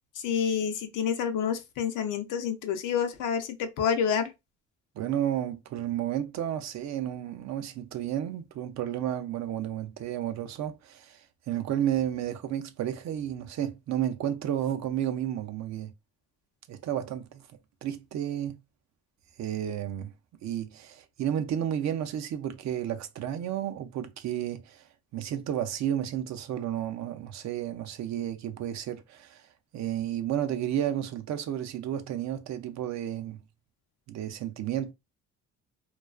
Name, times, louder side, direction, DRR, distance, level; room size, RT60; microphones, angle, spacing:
voice 1, 0.2-4.3, left 7 dB, 90° left, 0.6 m, -28 dB
voice 2, 5.0-15.9 16.7-17.5 17.8-18.6 19.4-20.1 20.4-24.9 25.1-29.5 29.7-33.4 34.1-34.9, right 10 dB, 65° right, 0.5 m, -32 dB
2.3 x 2.3 x 2.3 m
cardioid pair, 90°, 30 cm